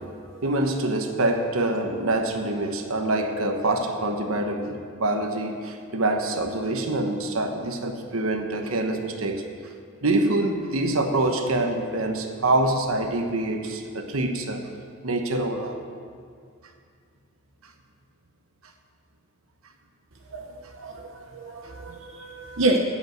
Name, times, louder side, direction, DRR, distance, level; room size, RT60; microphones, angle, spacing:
voice 1, 0.4-9.4 10.0-14.6 15.0-15.8, right 2 dB, 90° right, 5 dB, 1.1 m, -25 dB
voice 2, 20.8-22.8, right 2 dB, 70° right, 1 dB, 0.9 m, -28 dB
15.5 x 5.3 x 7.9 m, 2.2 s
head